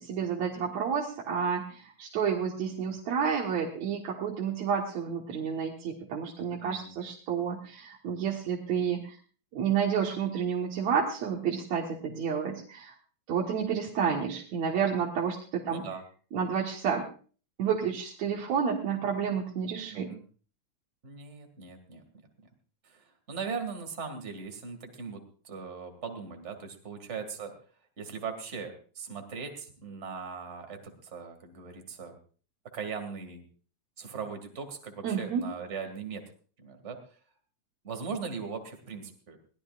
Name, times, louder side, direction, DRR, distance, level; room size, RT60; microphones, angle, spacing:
voice 1, 0.0-9.2 9.5-12.9 13.3-15.8 16.3-17.1 17.6-20.1 35.0-35.4, right 7 dB, 70° right, -2 dB, 2.8 m, -30 dB
voice 2, 6.6-6.9 15.7-16.0 19.9-20.2 21.0-22.0 22.8-27.5 28.0-32.2 32.7-33.4 34.0-36.2 36.6-37.0 37.8-39.4, right 5 dB, 25° right, 6 dB, 2.2 m, -39 dB
22.0 x 17.0 x 2.5 m, 0.41 s
omnidirectional pair, 3.3 m